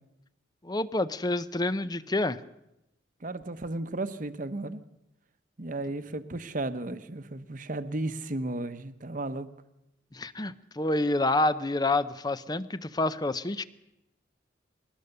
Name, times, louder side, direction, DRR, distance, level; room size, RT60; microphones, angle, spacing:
voice 1, 0.6-2.4 10.1-13.6, left 2 dB, 20° left, 14 dB, 0.7 m, -28 dB
voice 2, 3.2-4.8 5.6-9.5, right 2 dB, 45° right, 11 dB, 1.0 m, -34 dB
21.0 x 19.0 x 6.7 m, 0.87 s
head